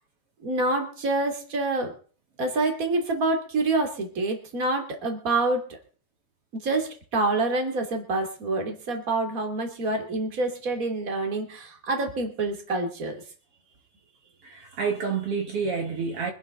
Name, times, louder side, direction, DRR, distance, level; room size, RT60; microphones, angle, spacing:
voice 1, 0.4-1.9 2.4-5.7 6.5-13.2, right 2 dB, 25° right, 2.8 m, -27 dB
voice 2, 14.4-16.3, right 5 dB, 50° right, 2.3 m, -28 dB
25.0 x 10.5 x 3.9 m
omnidirectional pair, 4.0 m